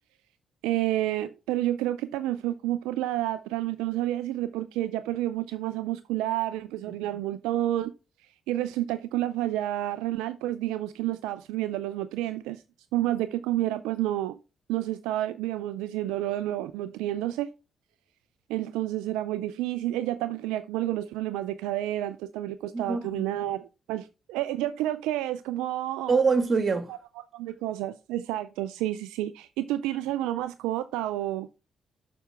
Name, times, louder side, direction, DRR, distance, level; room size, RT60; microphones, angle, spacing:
voice 1, 0.6-7.9 8.5-12.6 12.9-14.4 14.7-17.5 18.5-26.1 26.9-27.0 27.3-31.5, right 14 dB, 80° right, 0.3 m, -30 dB
voice 2, 22.7-23.2 26.1-26.9, right 4 dB, 45° right, 1.9 m, -24 dB
7.0 x 6.0 x 3.4 m
hypercardioid pair, 40°, 0 cm